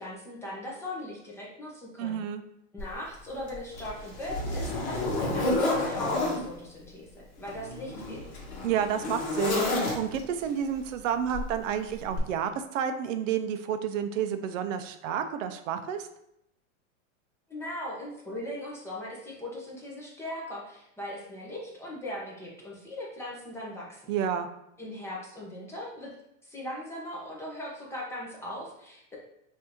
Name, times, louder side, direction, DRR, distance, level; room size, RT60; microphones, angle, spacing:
voice 1, 0.0-2.2 2.7-8.3 17.5-24.1 24.8-26.1 26.4-29.2, left 1 dB, 5° left, -4 dB, 0.7 m, -39 dB
voice 2, 2.0-2.4 8.6-16.1 24.1-24.5, right 8 dB, 70° right, 9 dB, 0.6 m, -30 dB
Zipper (clothing), 2.8-2.9 3.5-6.4 7.4-10.3 11.3-11.5 12.1-12.2, left 2 dB, 50° left, 1.3 m, -30 dB
5.4 x 2.7 x 2.9 m, 0.80 s
supercardioid pair, 145°, 39 cm